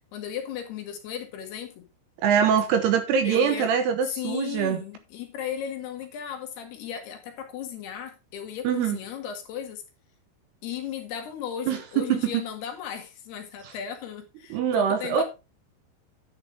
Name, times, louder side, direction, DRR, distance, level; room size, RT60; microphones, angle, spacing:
voice 1, 0.1-1.8 3.2-3.7 4.2-9.8 10.6-15.2, left 9 dB, 65° left, 3.2 m, -36 dB
voice 2, 2.2-4.8 8.6-9.0 11.7-12.4 13.6-13.7 14.5-15.2, right 8 dB, 75° right, 2.7 m, -23 dB
10.5 x 8.6 x 3.6 m
omnidirectional pair, 5.4 m